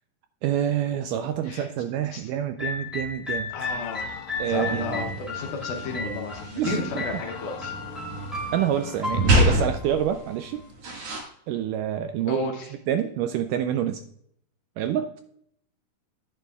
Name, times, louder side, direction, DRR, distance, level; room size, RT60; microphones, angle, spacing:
voice 1, 0.4-3.5 4.4-4.9 6.6-7.0 8.5-10.6 11.5-12.4 12.9-14.0 14.8-15.2, right 10 dB, 85° right, 8 dB, 1.9 m, -27 dB
sound 1, 2.6-10.6, left 3 dB, ahead, 2.0 m, -35 dB
voice 2, 3.5-4.2 4.5-7.7 12.3-12.7, left 3 dB, 70° left, 1 dB, 2.3 m, -32 dB
sound 2, 3.6-5.1 5.4-5.6 5.8-6.0 6.3-9.1, left 8 dB, 90° left, 2.4 m, -42 dB
sound 3, 4.5-11.2, right 1 dB, 50° right, 2.4 m, -28 dB
10.0 x 9.1 x 2.3 m, 0.69 s
omnidirectional pair, 4.1 m